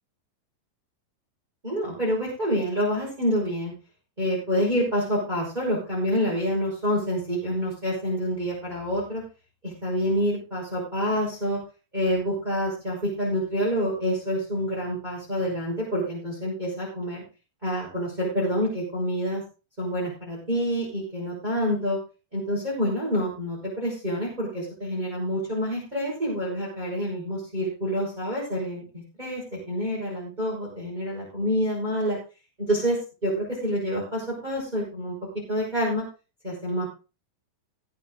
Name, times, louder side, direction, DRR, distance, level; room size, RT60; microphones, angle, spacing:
voice 1, 1.6-3.7 4.2-9.2 9.6-11.6 11.9-17.2 17.6-19.4 19.8-22.0 22.3-32.2 32.7-35.1 35.5-36.0 36.4-36.8, equal, 10° right, -6 dB, 5.5 m, -27 dB
19.0 x 8.0 x 3.8 m, 0.32 s
omnidirectional pair, 3.9 m